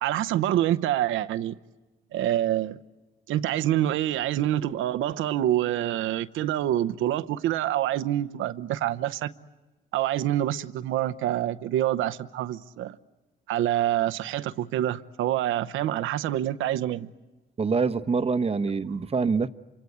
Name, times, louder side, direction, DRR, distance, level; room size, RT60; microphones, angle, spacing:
voice 1, 0.0-1.6 2.1-2.8 3.3-9.3 9.9-13.0 13.5-17.1, right 12 dB, 85° right, 0.8 m, -26 dB
voice 2, 17.6-19.5, right 5 dB, 30° right, 1.0 m, -25 dB
28.0 x 25.0 x 8.1 m
cardioid pair, 90°, 20 cm